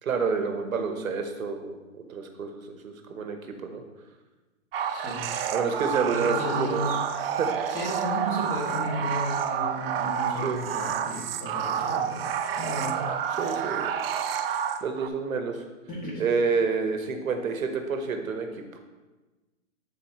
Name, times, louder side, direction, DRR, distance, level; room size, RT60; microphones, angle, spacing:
voice 1, 0.0-3.4 3.6-3.8 5.5-6.8 7.4-7.6 10.4-10.7 13.4-13.9 14.5-15.6 16.2-18.8, right 5 dB, 90° right, 6 dB, 1.0 m, -29 dB
sound 1, 4.7-15.1, right 8 dB, 45° right, 0.5 m, -29 dB
voice 2, 4.9-5.2 6.1-7.0 7.7-12.2 12.6-13.0 15.9-16.2, equal, 20° left, -5 dB, 2.0 m, -33 dB
10.5 x 4.0 x 3.0 m, 1.2 s
hypercardioid pair, 140°, 40 cm